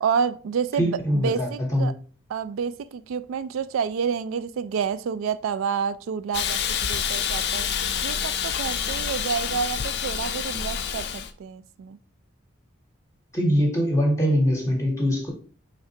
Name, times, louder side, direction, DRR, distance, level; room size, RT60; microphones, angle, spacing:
voice 1, 0.0-1.9 2.3-7.7 8.0-12.0, right 6 dB, 80° right, 0.3 m, -29 dB
voice 2, 0.8-1.9 13.3-15.3, equal, 15° left, 0.8 m, -23 dB
Hiss, 6.3-11.3, left 8 dB, 50° left, 0.4 m, -27 dB
4.8 x 3.3 x 2.7 m
head